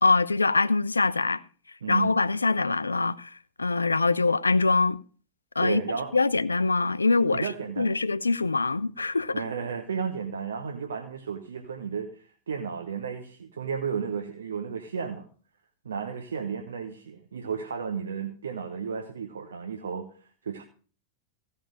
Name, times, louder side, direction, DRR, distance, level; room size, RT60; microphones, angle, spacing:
voice 1, 0.0-1.4 1.9-5.0 5.6-5.8 6.1-7.5 7.8-9.4, left 3 dB, 80° left, 0.5 m, -24 dB
voice 2, 1.8-2.2 5.6-6.2 7.3-7.9 9.3-15.3 15.8-20.6, right 6 dB, 70° right, 1.1 m, -33 dB
16.0 x 5.7 x 6.3 m
figure-of-eight pair, 90°, 0 cm